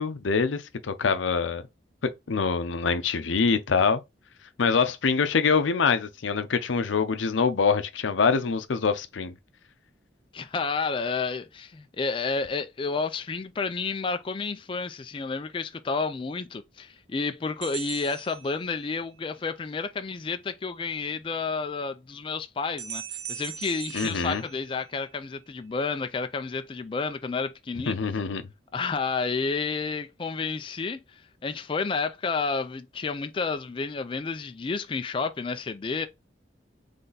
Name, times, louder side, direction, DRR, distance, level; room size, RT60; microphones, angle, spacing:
voice 1, 0.0-1.6 2.0-4.0 4.6-9.3 23.9-24.4 27.9-28.5, left 5 dB, 85° left, 0.6 m, -25 dB
voice 2, 10.3-28.0 28.7-36.1, left 4 dB, 25° left, 0.3 m, -30 dB
sound 1, 17.6-19.1 22.8-25.3, right 9 dB, 65° right, 0.8 m, -40 dB
4.0 x 3.4 x 3.9 m
head